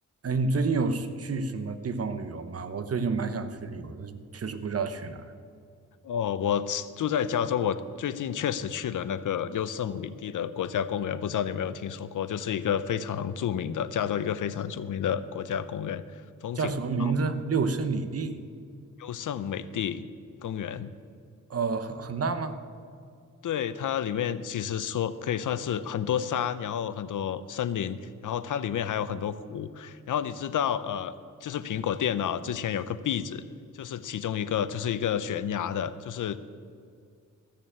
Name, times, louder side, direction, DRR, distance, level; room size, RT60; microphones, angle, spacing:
voice 1, 0.2-5.2 16.5-18.4 21.5-22.6, right 4 dB, 50° right, 10 dB, 1.0 m, -29 dB
voice 2, 6.0-16.7 17.0-17.1 19.0-20.1 20.4-20.9 23.4-28.0 28.2-31.1 31.4-33.4 33.7-36.4, left 9 dB, 75° left, 14 dB, 0.7 m, -30 dB
14.5 x 6.8 x 8.8 m, 2.3 s
cardioid pair, 95°, 31 cm